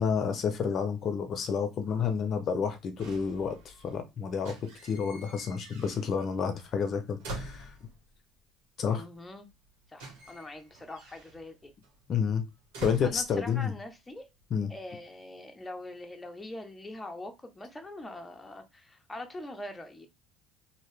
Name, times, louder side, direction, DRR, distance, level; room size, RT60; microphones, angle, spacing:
voice 1, 0.0-4.5 4.8-7.7 8.8-9.0 12.1-12.4 12.8-13.7 14.5-14.7, left 6 dB, 50° left, 0.6 m, -30 dB
sound 1, 3.0-4.0 4.3-6.3 6.6-8.2 9.2-9.3 9.5-13.9 14.2-14.7, right 2 dB, 80° right, 1.6 m, -46 dB
voice 2, 8.9-9.5 9.9-11.7 13.0-14.3 14.7-20.1, left 1 dB, 15° left, 0.7 m, -43 dB
2.8 x 2.7 x 3.2 m
supercardioid pair, 100°, 0 cm